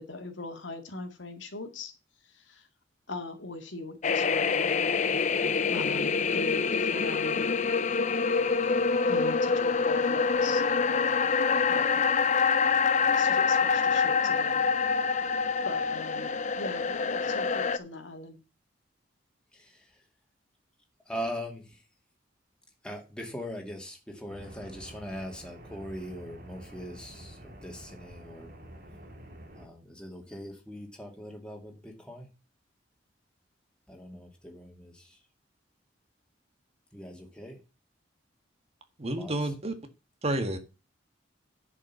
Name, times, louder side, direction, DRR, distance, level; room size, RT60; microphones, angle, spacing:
voice 1, 0.0-1.9 2.3-2.7 3.1-4.7 5.7-7.5 9.1-11.3 11.7-12.4 13.1-14.6 15.6-18.4, left 3 dB, 85° left, 2.2 m, -40 dB
sound 1, 4.0-17.8, left 5 dB, 40° left, 0.6 m, -26 dB
voice 2, 19.5-20.0 21.1-21.8 22.8-28.5 29.5-32.3 33.9-35.2 36.9-37.6 39.1-39.5, equal, 5° left, 2.4 m, -41 dB
sound 2, 24.3-29.7, right 1 dB, 50° right, 2.2 m, -48 dB
voice 3, 39.0-39.7 40.2-40.6, right 1 dB, 35° right, 1.6 m, -30 dB
10.5 x 5.5 x 6.9 m
head